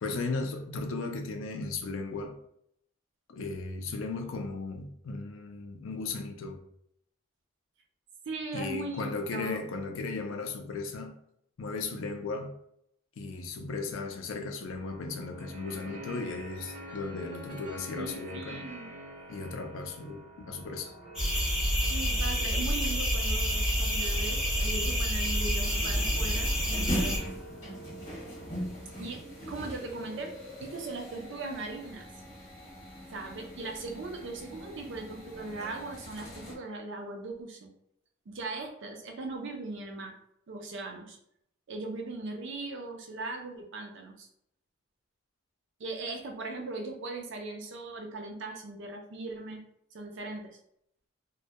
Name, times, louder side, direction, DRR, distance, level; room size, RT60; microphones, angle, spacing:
voice 1, 0.0-2.4 3.3-6.6 8.5-11.2 11.6-12.5 13.2-18.6 19.3-20.9, left 3 dB, 65° left, 4 dB, 0.4 m, -36 dB
voice 2, 8.3-9.6 18.0-18.9 21.9-27.2 29.0-32.1 33.1-37.7 38.3-40.2 40.5-41.2 41.7-44.3 45.8-49.6 49.9-50.6, right 3 dB, 60° right, 3 dB, 0.4 m, -39 dB
sound 1, 14.7-31.2, right 1 dB, 85° right, 0.8 m, -48 dB
sound 2, 21.2-27.2, equal, ahead, 0.6 m, -28 dB
sound 3, 25.6-36.5, equal, 35° left, 0.9 m, -41 dB
2.1 x 2.1 x 2.8 m, 0.73 s
head